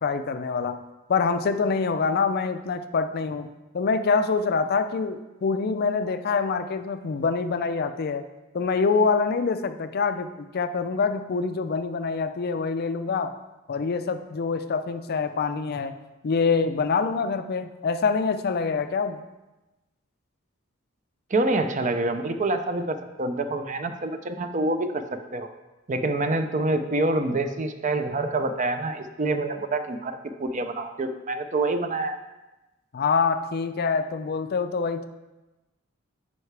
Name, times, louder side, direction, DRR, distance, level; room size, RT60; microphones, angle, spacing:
voice 1, 0.0-0.8 1.1-3.5 3.7-8.3 8.5-13.4 13.7-15.9 16.2-19.2 32.9-35.1, left 5 dB, 50° left, 9 dB, 0.4 m, -25 dB
voice 2, 21.3-25.0 25.3-25.5 25.9-32.2, right 2 dB, 35° right, 8 dB, 0.5 m, -26 dB
9.4 x 5.6 x 3.3 m, 1.1 s
head